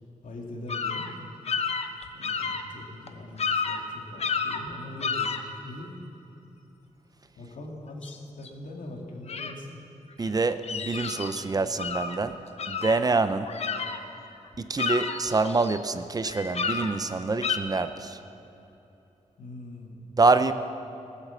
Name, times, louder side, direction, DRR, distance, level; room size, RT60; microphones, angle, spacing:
voice 1, 0.2-1.1 2.1-5.9 7.4-9.8 19.4-20.2, left 1 dB, 90° left, 0 dB, 2.4 m, -42 dB
sound 1, 0.7-1.1 1.5-2.6 3.1-3.2 3.4-3.8 4.2-4.7 5.0-5.4 8.0-8.2 8.4-8.5 9.3-9.5 10.2-11.4 11.8-12.2 12.6-14.3 14.5-15.8 16.2-16.9 17.4-17.6, left 5 dB, 50° left, 0.8 m, -30 dB
voice 2, 10.2-12.4 12.7-13.5 14.6-18.2 20.2-20.5, right 3 dB, 30° right, 11 dB, 0.5 m, -26 dB
19.5 x 8.3 x 7.3 m, 2.9 s
wide cardioid pair, 135°, 13 cm